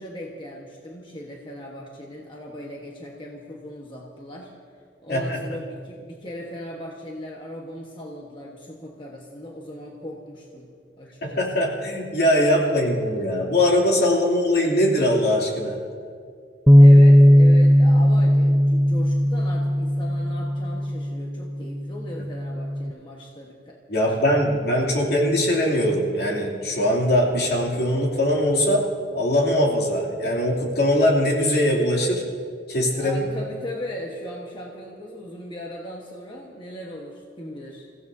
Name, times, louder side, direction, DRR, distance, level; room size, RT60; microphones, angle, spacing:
voice 1, 0.0-4.5 5.0-10.7 11.0-11.7 16.7-25.1 32.9-37.9, equal, 30° left, -1 dB, 1.3 m, -38 dB
voice 2, 5.1-5.4 11.2-15.8 23.9-28.8 29.1-32.2 32.7-33.2, left 1 dB, 60° left, -2 dB, 2.9 m, -21 dB
Bass guitar, 16.7-22.9, equal, ahead, 0.4 m, -16 dB
28.5 x 16.0 x 2.8 m, 2.2 s
head